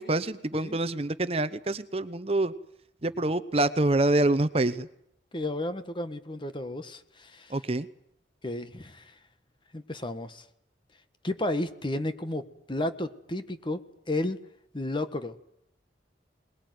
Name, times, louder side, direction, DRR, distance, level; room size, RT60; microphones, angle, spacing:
voice 1, 0.0-2.5 3.0-4.9 7.5-7.9, right 2 dB, 35° right, 13 dB, 0.9 m, -26 dB
voice 2, 5.3-7.6 8.4-9.1 9.7-10.4 11.2-14.4 14.7-15.3, left 1 dB, 25° left, 10 dB, 1.5 m, -33 dB
22.0 x 21.0 x 9.4 m, 0.75 s
head